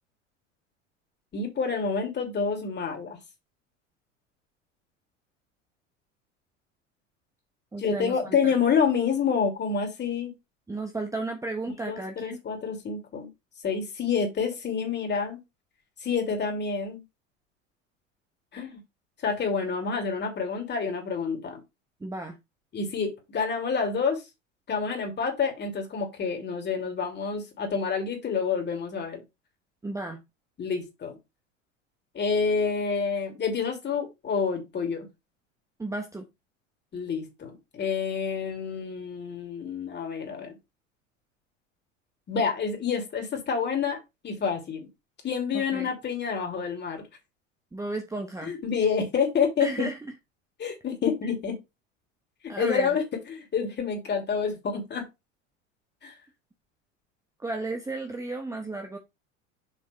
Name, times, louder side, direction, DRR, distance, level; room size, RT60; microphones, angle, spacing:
voice 1, 1.3-3.2 7.8-10.3 11.8-13.3 13.6-15.4 16.0-17.0 18.5-18.8 19.2-21.6 22.7-24.2 24.7-29.2 30.6-31.2 32.1-35.1 36.9-40.6 42.3-44.9 45.2-47.0 48.4-49.9 50.6-51.6 52.4-55.1 56.0-56.1, left 6 dB, 25° left, 3.1 m, -28 dB
voice 2, 7.7-8.5 10.7-12.4 22.0-22.4 29.8-30.2 35.8-36.3 45.5-45.9 47.7-48.5 49.6-50.0 52.5-52.9 57.4-59.0, right 2 dB, 10° right, 1.1 m, -33 dB
7.0 x 5.3 x 3.4 m
figure-of-eight pair, 75°, 38 cm